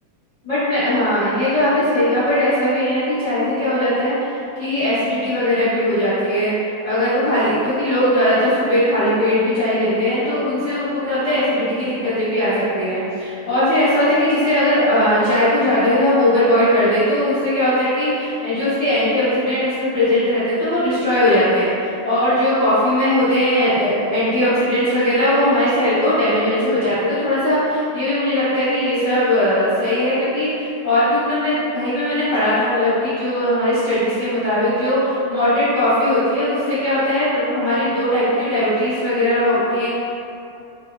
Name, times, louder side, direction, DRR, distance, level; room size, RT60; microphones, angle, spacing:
voice 1, 0.4-6.5 6.8-39.9, left 1 dB, 40° left, -14 dB, 0.5 m, -19 dB
3.6 x 3.2 x 2.2 m, 2.7 s
omnidirectional pair, 2.2 m